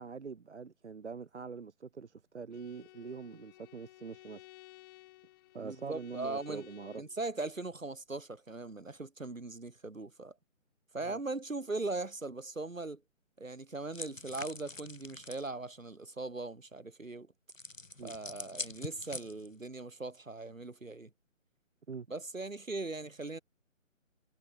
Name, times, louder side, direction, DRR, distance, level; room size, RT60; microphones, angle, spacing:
voice 1, 0.0-4.5 5.5-7.0 11.0-11.2 18.0-18.2 21.9-22.1, right 5 dB, 60° right, 1.3 m, -44 dB
Bowed string instrument, 2.5-7.2, left 21 dB, 15° left, 3.1 m, -56 dB
voice 2, 5.6-6.6 6.9-10.3 10.9-13.0 13.4-17.3 18.0-21.1 22.1-23.4, right 3 dB, 75° right, 3.2 m, -39 dB
sound 1, 13.9-15.5 17.5-19.6, left 2 dB, 75° left, 6.2 m, -44 dB
figure-of-eight pair, 150°, 40 cm